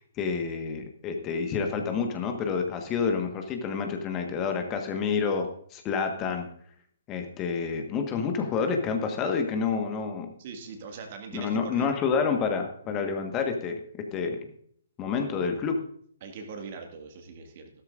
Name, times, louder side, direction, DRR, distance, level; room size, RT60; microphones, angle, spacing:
voice 1, 0.2-6.5 7.1-10.3 11.3-13.8 14.1-14.4 15.0-15.8, left 5 dB, 20° left, 5 dB, 1.4 m, -28 dB
voice 2, 10.4-11.9 12.8-13.0 16.2-17.7, right 4 dB, 40° right, 4 dB, 1.9 m, -41 dB
15.0 x 13.0 x 2.6 m, 0.62 s
figure-of-eight pair, 125°, 0 cm